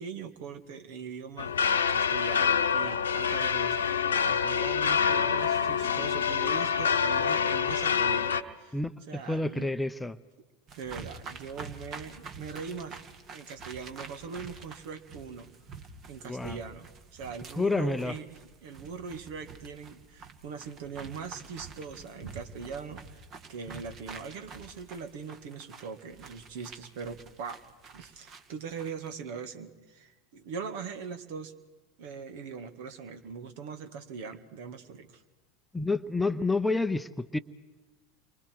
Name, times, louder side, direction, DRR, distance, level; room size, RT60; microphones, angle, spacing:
voice 1, 0.0-1.5 1.9-8.8 9.1-9.7 10.8-13.0 13.3-15.5 16.1-18.3 18.6-27.6 27.9-31.5 32.0-35.2, right 6 dB, 60° right, 8 dB, 2.1 m, -41 dB
sound 1, 1.4-8.4, left 7 dB, 80° left, 1.0 m, -26 dB
voice 2, 8.7-10.2 16.2-16.6 17.5-18.2 35.7-37.4, left 2 dB, 5° left, 10 dB, 0.8 m, -29 dB
sound 2, 10.7-29.1, right 5 dB, 40° right, 2.2 m, -47 dB
30.0 x 24.0 x 4.7 m, 1.2 s
figure-of-eight pair, 80°, 0 cm